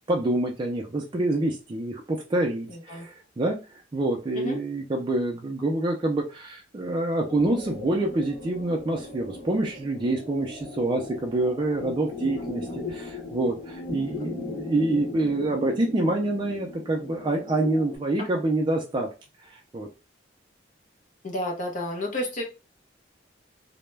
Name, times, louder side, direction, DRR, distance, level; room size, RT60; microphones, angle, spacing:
voice 1, 0.1-19.1 19.4-19.9, right 2 dB, 25° right, 0 dB, 0.3 m, -27 dB
voice 2, 2.7-3.1 4.3-4.6 12.7-12.8 18.2-18.3 21.2-22.4, left 1 dB, 45° left, 1 dB, 0.6 m, -31 dB
sound 1, 7.3-18.0, left 3 dB, 75° left, 0.8 m, -38 dB
2.2 x 2.0 x 3.1 m, 0.30 s
head